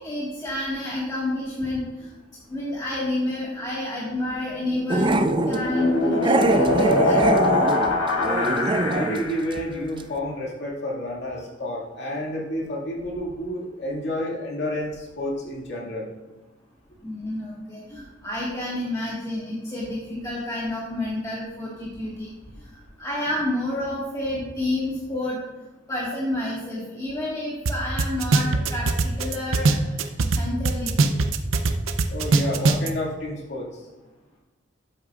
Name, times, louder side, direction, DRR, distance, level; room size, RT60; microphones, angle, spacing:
voice 1, 0.0-2.1 2.5-7.2 17.0-22.3 22.6-25.4 25.9-31.1, left 1 dB, 20° left, -7 dB, 1.7 m, -29 dB
sound 1, 4.7-9.5, left 2 dB, 75° left, 1.9 m, -23 dB
Growling, 4.9-5.6 6.2-9.2 9.5-9.7 10.0-10.1, right 2 dB, 25° right, 0.4 m, -23 dB
voice 2, 8.2-16.1 32.1-33.8, left 1 dB, 60° left, -2 dB, 2.2 m, -30 dB
sound 2, 27.7-27.8 28.0-30.4 30.7-32.9, right 3 dB, 90° right, 0.6 m, -20 dB
12.5 x 8.0 x 2.5 m, 1.1 s
head